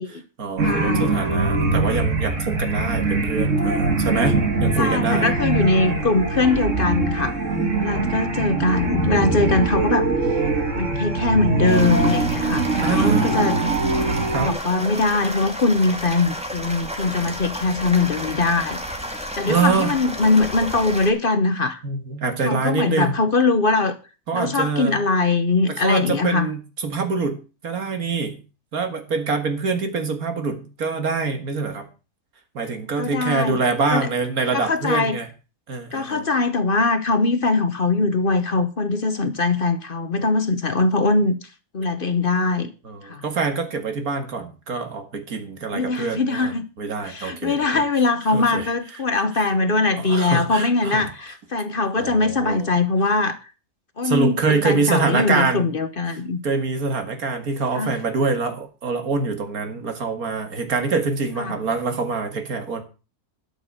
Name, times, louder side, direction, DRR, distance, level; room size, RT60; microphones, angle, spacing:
voice 1, 0.0-5.3 5.8-6.1 12.8-13.3 14.3-14.6 19.5-19.9 21.8-23.2 24.3-25.0 25.7-28.4 28.7-31.9 32.5-35.3 35.7-36.3 40.2-40.3 42.8-47.8 48.3-49.0 49.3-49.5 50.0-51.1 52.0-52.7 54.0-55.7 56.1-62.8, right 4 dB, 80° right, 2.4 m, -25 dB
voice 2, 0.6-1.3 4.8-7.3 7.8-10.1 10.8-12.7 12.9-13.6 14.4-18.8 19.4-21.8 22.4-24.0 24.3-26.5 33.0-33.6 33.9-34.1 34.5-35.2 35.9-41.4 41.7-42.7 43.0-43.2 45.7-46.6 47.1-53.4 54.0-56.4 57.7-57.9, left 3 dB, 45° left, 1.0 m, -21 dB
sound 1, 0.6-14.5, right 3 dB, 60° right, 2.6 m, -22 dB
sound 2, 11.7-21.1, equal, 5° right, 1.9 m, -32 dB
12.5 x 6.7 x 6.6 m
omnidirectional pair, 1.5 m